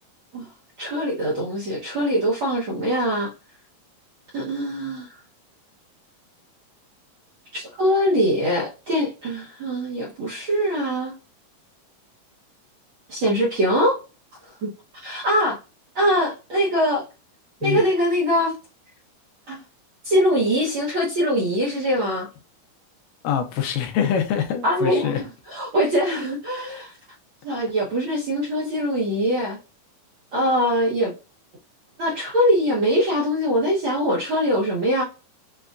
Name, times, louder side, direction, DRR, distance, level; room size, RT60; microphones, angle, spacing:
voice 1, 0.8-3.3 4.3-5.1 7.5-11.1 13.1-14.0 14.6-14.7 15.0-15.6 15.9-17.0 17.6-18.5 19.5-19.6 20.0-22.3 24.6-26.9 27.4-29.6 30.3-31.1 32.0-35.0, equal, 65° right, 1.3 m, -22 dB
voice 2, 23.2-25.2, left 8 dB, 85° left, 2.4 m, -24 dB
6.7 x 2.3 x 2.5 m
omnidirectional pair, 3.8 m